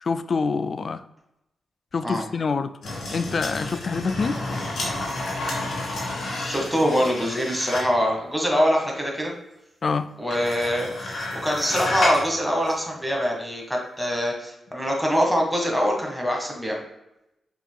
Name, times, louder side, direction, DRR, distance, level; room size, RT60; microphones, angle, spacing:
voice 1, 0.0-1.0 1.9-2.7 3.1-4.4 9.8-10.1, left 4 dB, 55° left, 12 dB, 0.3 m, -26 dB
sound 1, 2.8-8.0 10.3-12.3 12.6-12.7, left 2 dB, 75° left, 1.6 m, -30 dB
voice 2, 6.5-9.3 10.2-16.8, equal, ahead, -1 dB, 1.5 m, -24 dB
5.8 x 3.8 x 2.2 m, 0.89 s
cardioid pair, 50°, 0 cm